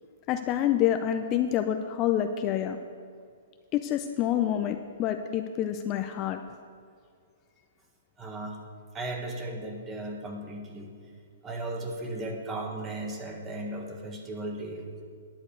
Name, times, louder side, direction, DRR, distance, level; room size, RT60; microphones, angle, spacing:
voice 1, 0.3-2.8 3.7-6.4, left 11 dB, 30° left, 6 dB, 0.5 m, -27 dB
voice 2, 8.2-8.6 8.9-10.9 11.4-15.0, right 2 dB, 15° right, 2 dB, 1.5 m, -36 dB
10.5 x 5.2 x 8.4 m, 2.2 s
hypercardioid pair, 150°, 0 cm